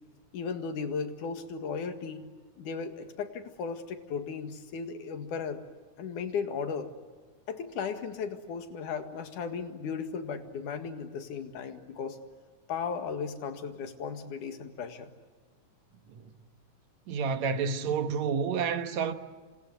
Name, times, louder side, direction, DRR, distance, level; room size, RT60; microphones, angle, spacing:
voice 1, 0.3-2.2 2.6-5.6 6.0-6.9 7.5-12.2 12.7-15.1, left 5 dB, 75° left, 3.4 m, -36 dB
voice 2, 17.1-19.1, right 6 dB, 65° right, 2.4 m, -29 dB
28.5 x 26.0 x 8.1 m
omnidirectional pair, 3.6 m